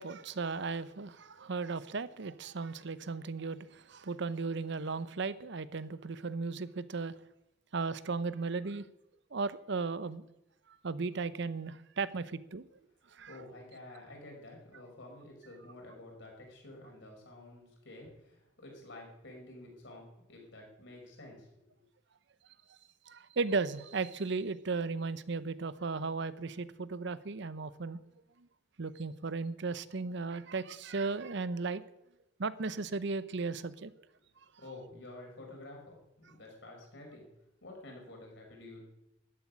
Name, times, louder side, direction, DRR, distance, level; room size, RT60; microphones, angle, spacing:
voice 1, 0.0-7.1 7.7-8.9 9.3-10.2 10.7-12.6 13.1-13.4 23.1-28.0 28.4-28.5 28.8-31.9 32.4-33.9, right 4 dB, 65° right, 15 dB, 0.7 m, -36 dB
voice 2, 13.3-21.7 34.6-37.3 37.6-38.8, left 2 dB, 65° left, 0 dB, 5.6 m, -50 dB
13.5 x 8.2 x 9.9 m, 0.89 s
head